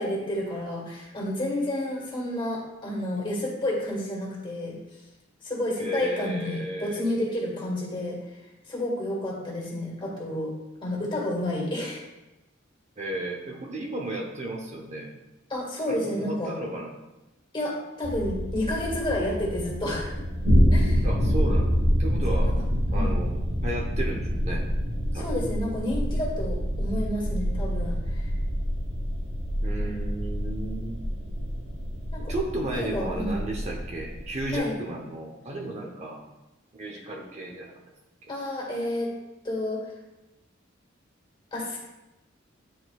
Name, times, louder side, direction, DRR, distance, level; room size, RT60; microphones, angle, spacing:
voice 1, 0.0-4.8 5.4-8.2 8.7-10.5 10.8-12.0 15.5-16.5 17.5-20.1 20.7-21.1 22.3-22.5 22.9-23.1 25.1-28.3 32.1-32.3 32.7-33.4 34.5-34.7 38.3-39.1 39.4-39.8 41.5-41.8, left 1 dB, 25° left, -3 dB, 1.8 m, -30 dB
voice 2, 5.8-7.0 13.0-15.1 15.9-16.9 21.0-22.5 22.9-23.4 23.6-24.7 25.1-25.4 29.6-31.0 32.2-36.2 36.7-37.7, right 1 dB, 35° right, 0 dB, 0.8 m, -34 dB
sound 1, 18.0-34.6, equal, 70° right, 1.1 m, -27 dB
10.0 x 4.4 x 2.3 m, 0.99 s
head